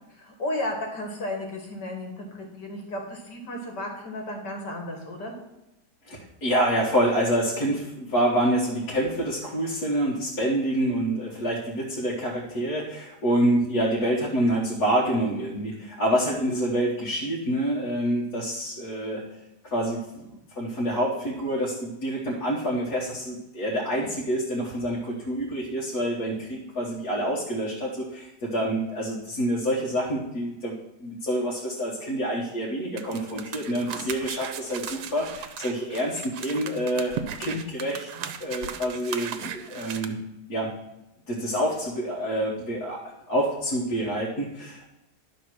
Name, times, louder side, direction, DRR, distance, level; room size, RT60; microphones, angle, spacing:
voice 1, 0.1-5.3, left 1 dB, 85° left, 2 dB, 2.3 m, -33 dB
voice 2, 6.1-19.2 19.6-20.3 20.6-30.8 31.0-37.1 37.4-38.1 38.4-40.2 40.5-40.7 41.3-43.0 43.3-44.9, right 1 dB, 60° left, -6 dB, 2.0 m, -27 dB
sound 1, 33.0-40.0, right 8 dB, 75° right, 1.3 m, -37 dB
11.5 x 4.1 x 6.2 m, 0.91 s
omnidirectional pair, 1.8 m